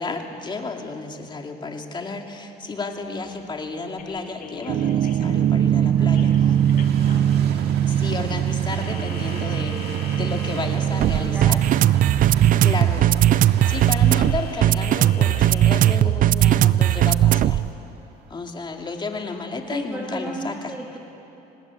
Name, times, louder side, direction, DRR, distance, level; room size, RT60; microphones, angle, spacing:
voice 1, 0.0-6.5 7.8-11.6 12.6-13.0 13.7-17.6 18.3-20.7, left 3 dB, 25° left, 3 dB, 2.4 m, -32 dB
Train, 3.3-19.2 19.8-19.9, right 6 dB, 75° right, 2.1 m, -40 dB
sound 1, 4.0-15.9, left 6 dB, 60° left, 2.6 m, -43 dB
sound 2, 4.7-17.7, right 11 dB, 55° right, 0.5 m, -19 dB
voice 2, 5.9-7.2 10.8-11.7 12.5-12.9 19.7-21.0, right 1 dB, 10° right, -2 dB, 2.4 m, -36 dB
24.0 x 19.5 x 8.5 m, 2.9 s
cardioid pair, 110°, 17 cm